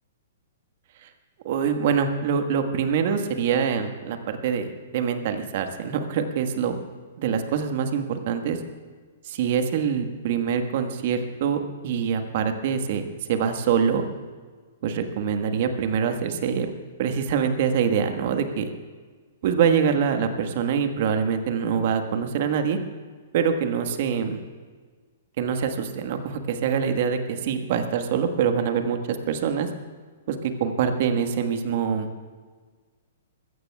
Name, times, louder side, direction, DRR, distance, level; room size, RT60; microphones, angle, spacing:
voice 1, 1.4-6.8 7.2-8.6 9.2-14.1 14.8-16.7 17.0-18.7 19.4-22.8 23.3-24.4 25.4-29.0 29.3-29.7 30.3-32.1, right 7 dB, 55° right, 6 dB, 1.5 m, -25 dB
21.5 x 16.0 x 2.4 m, 1.5 s
hypercardioid pair, 120°, 0 cm